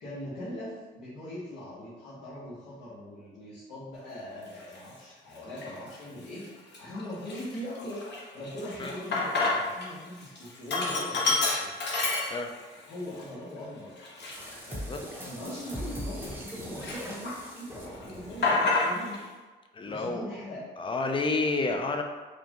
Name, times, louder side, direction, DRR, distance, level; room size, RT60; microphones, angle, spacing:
voice 1, 0.0-6.4 6.8-8.0 8.3-11.7 12.9-14.8 15.2-19.2 19.8-20.6, left 1 dB, 80° left, -12 dB, 1.4 m, -41 dB
Sink (filling or washing), 4.6-4.8 5.4-6.0 6.4-6.5 6.7-9.9 10.2-12.7 13.2-13.3 14.0-16.5 16.8-17.6 17.9-19.2, left 3 dB, 60° left, 1.0 m, -29 dB
sound 1, 14.3-18.5, equal, 10° right, 0.7 m, -40 dB
voice 2, 14.7-15.0 19.7-20.2 20.8-22.0, left 3 dB, 25° left, 4 dB, 0.5 m, -29 dB
4.8 x 2.3 x 2.9 m, 1.3 s
cardioid pair, 90°, 20 cm